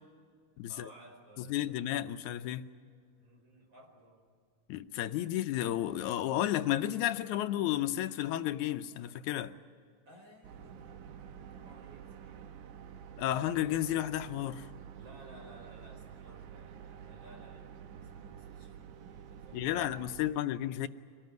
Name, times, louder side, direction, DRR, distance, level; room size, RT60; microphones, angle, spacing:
voice 1, 0.7-1.9 3.2-4.2 10.1-12.4 14.9-20.7, right 1 dB, 40° right, 0 dB, 5.5 m, -57 dB
voice 2, 1.5-2.7 4.7-9.6 13.2-14.7 19.5-20.9, left 12 dB, 80° left, 10 dB, 2.1 m, -32 dB
sound 1, 10.4-20.3, right 8 dB, 90° right, 2.6 m, -49 dB
24.5 x 19.0 x 9.3 m, 2.1 s
omnidirectional pair, 3.4 m